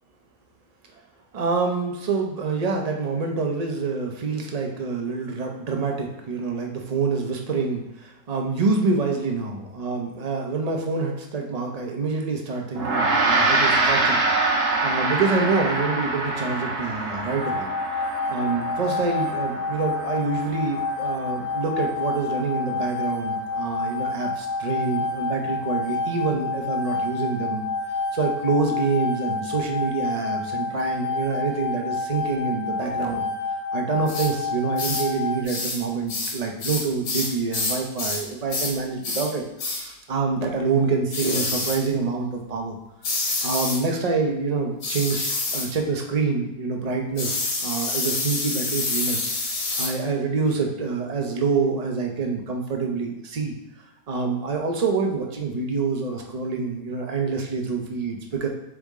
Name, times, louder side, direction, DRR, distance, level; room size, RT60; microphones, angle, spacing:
voice 1, 1.3-14.2 14.8-17.7 18.3-27.7 28.1-33.3 33.7-42.8 43.4-49.2 49.8-53.6 54.1-58.5, right 4 dB, 35° right, 1 dB, 0.6 m, -26 dB
Gong, 12.8-22.4, right 2 dB, 60° right, 1.3 m, -25 dB
sound 1, 17.4-35.4, left 3 dB, 25° left, 1.4 m, -29 dB
sound 2, 34.1-34.3 34.8-35.1 35.5-35.8 36.1-38.2 38.5-38.8 39.0-39.3 39.6-39.8 41.1-41.8 43.0-43.8 44.8-45.7 47.2-49.9, left 3 dB, 80° left, 1.7 m, -27 dB
7.0 x 3.7 x 3.7 m, 0.95 s
omnidirectional pair, 1.7 m